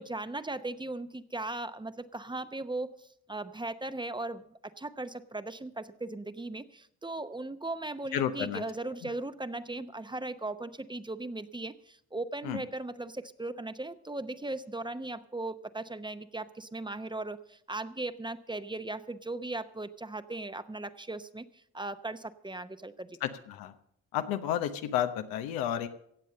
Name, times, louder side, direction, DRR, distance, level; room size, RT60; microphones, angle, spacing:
voice 1, 0.0-23.2, right 2 dB, 15° right, 12 dB, 0.8 m, -38 dB
voice 2, 8.1-8.6 9.0-9.1 12.4-12.6 23.2-23.7 24.1-25.9, left 11 dB, 90° left, 8 dB, 1.0 m, -31 dB
17.0 x 7.5 x 6.6 m, 0.71 s
supercardioid pair, 65°, 35 cm